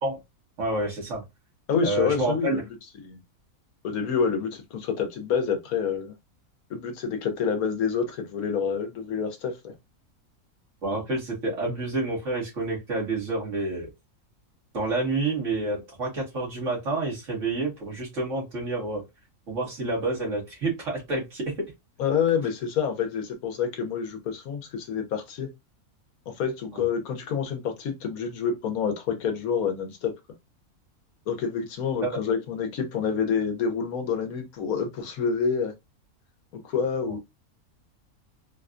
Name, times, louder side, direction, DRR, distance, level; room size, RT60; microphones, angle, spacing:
voice 1, 0.6-1.2 1.8-2.6 10.8-13.9 14.7-19.0 19.5-21.7 26.7-26.8 32.0-32.2 37.1-37.2, right 2 dB, 55° right, 1.7 m, -29 dB
voice 2, 1.7-2.6 3.0-3.2 3.8-6.1 6.7-9.7 22.0-25.5 26.3-30.1 31.3-35.7 36.5-37.2, left 6 dB, 70° left, 1.2 m, -27 dB
4.1 x 2.2 x 2.4 m
omnidirectional pair, 1.6 m